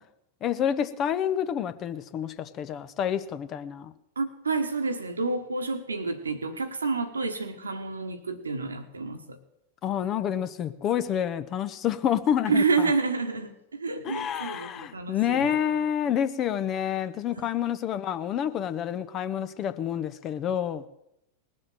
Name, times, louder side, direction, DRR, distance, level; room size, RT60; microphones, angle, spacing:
voice 1, 0.4-3.9 9.8-12.9 14.0-20.8, left 9 dB, 30° left, 0.9 m, -28 dB
voice 2, 4.2-9.4 12.5-15.5 17.3-17.4, right 4 dB, 75° right, 1.3 m, -29 dB
19.0 x 7.7 x 7.6 m
figure-of-eight pair, 90°, 0 cm